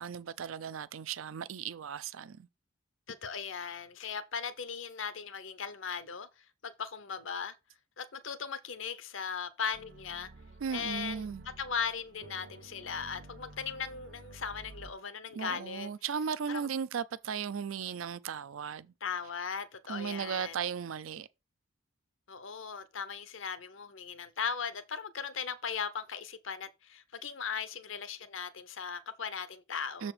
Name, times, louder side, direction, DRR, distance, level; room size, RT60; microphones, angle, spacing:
voice 1, 0.0-2.5 10.6-11.4 15.4-18.9 19.9-21.3 30.0-30.1, right 7 dB, 90° right, 0.5 m, -36 dB
voice 2, 3.1-7.6 8.0-10.3 10.7-11.3 11.6-15.9 16.5-16.7 19.0-20.5 22.3-30.1, left 6 dB, 75° left, 0.8 m, -38 dB
sound 1, 9.7-14.9, right 2 dB, 50° right, 0.7 m, -52 dB
6.9 x 4.2 x 4.9 m
head